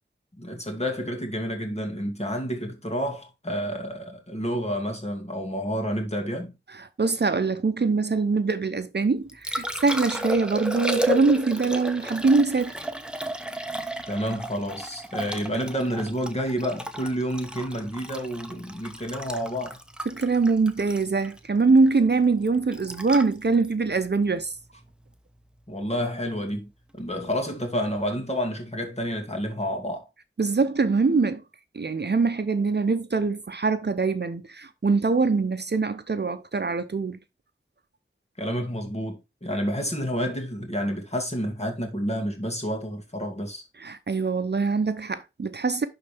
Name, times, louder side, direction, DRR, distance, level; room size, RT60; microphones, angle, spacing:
voice 1, 0.4-6.5 14.1-19.8 25.7-26.7 26.9-30.1 38.4-43.6, equal, 30° left, 2.4 m, -29 dB
voice 2, 6.7-12.9 20.1-24.5 30.4-31.4 31.7-37.2 43.8-45.8, right 4 dB, 55° right, 0.7 m, -23 dB
Liquid, 9.0-25.1 27.9-28.1, right 1 dB, 5° right, 1.0 m, -33 dB
11.0 x 4.0 x 3.4 m
wide cardioid pair, 45°, 21 cm